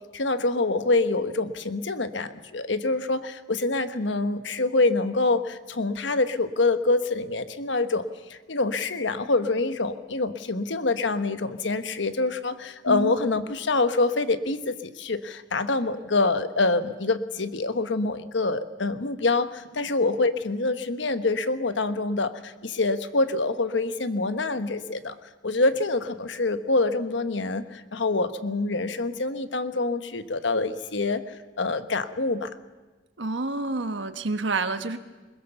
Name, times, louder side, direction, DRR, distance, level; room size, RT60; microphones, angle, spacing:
voice 1, 0.1-25.1 25.4-31.2 31.6-32.5, left 3 dB, 70° left, 11 dB, 1.2 m, -26 dB
voice 2, 33.2-35.0, right 3 dB, 75° right, 10 dB, 1.2 m, -28 dB
21.5 x 21.0 x 7.0 m, 1.2 s
head